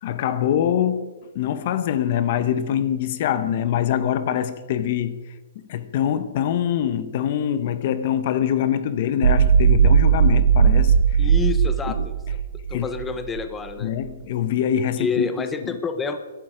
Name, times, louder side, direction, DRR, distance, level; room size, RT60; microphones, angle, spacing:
voice 1, 0.0-1.1 1.3-5.2 5.6-11.3 12.7-12.9 13.8-15.7, left 10 dB, 40° left, 0.9 m, -24 dB
sound 1, 9.2-13.4, right 7 dB, 80° right, 0.8 m, -17 dB
voice 2, 11.2-12.1 12.7-13.9 15.0-16.2, left 4 dB, 10° left, 0.8 m, -28 dB
21.5 x 12.0 x 5.0 m
hypercardioid pair, 165°, 0 cm